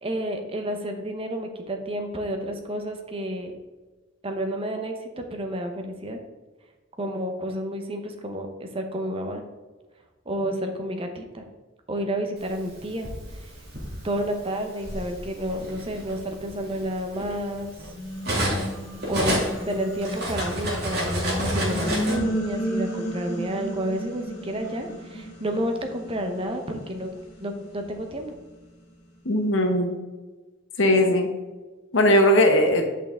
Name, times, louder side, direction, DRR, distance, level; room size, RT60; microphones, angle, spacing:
voice 1, 0.0-3.5 4.2-6.2 7.0-9.4 10.3-11.4 11.9-13.5 14.0-17.9 19.1-27.1 27.4-28.3, equal, 30° right, 4 dB, 0.8 m, -30 dB
Cutlery silverware, 12.6-13.9 14.9-15.1 15.5-18.7 19.0-22.2, equal, 55° right, 2.2 m, -28 dB
sound 1, 14.7-17.1 17.6-28.9, right 1 dB, 60° left, 2.1 m, -34 dB
voice 2, 29.2-30.0 30.8-31.3 31.9-32.8, left 1 dB, 75° left, 4 dB, 1.2 m, -19 dB
8.9 x 5.5 x 3.7 m, 1.2 s
head